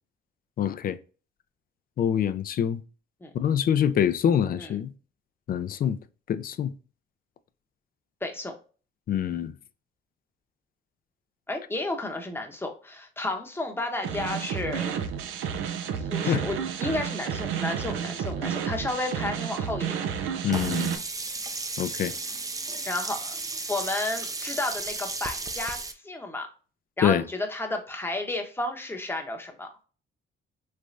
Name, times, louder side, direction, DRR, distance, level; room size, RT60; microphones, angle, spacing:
voice 1, 0.6-1.0 2.0-2.8 3.3-4.9 5.5-6.0 6.3-6.7 9.1-9.5 16.3-16.4 20.4-21.0 21.8-22.1 27.0-27.2, left 9 dB, 45° left, 0.4 m, -25 dB
voice 2, 8.2-8.5 11.5-15.0 16.0-20.0 22.9-23.4 23.7-26.5 27.0-29.7, left 2 dB, 10° left, 0.8 m, -32 dB
sound 1, 14.0-21.0, right 8 dB, 85° right, 0.5 m, -31 dB
Sink (filling or washing), 20.5-25.9, right 3 dB, 15° right, 0.4 m, -34 dB
3.4 x 3.2 x 2.5 m
cardioid pair, 90°, 20 cm